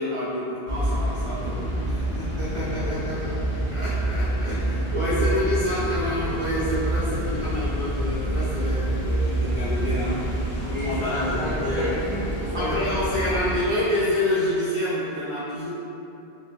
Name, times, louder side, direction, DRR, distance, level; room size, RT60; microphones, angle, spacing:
voice 1, 0.0-3.3 3.7-11.3 11.6-11.9 12.5-15.7, left 1 dB, 45° right, -9 dB, 0.4 m, -28 dB
sound 1, 0.7-13.7, right 1 dB, 70° left, 0.9 m, -27 dB
voice 2, 5.0-5.4 10.6-12.8, left 1 dB, 30° left, -11 dB, 0.9 m, -31 dB
3.1 x 2.7 x 2.6 m, 2.8 s
omnidirectional pair, 1.1 m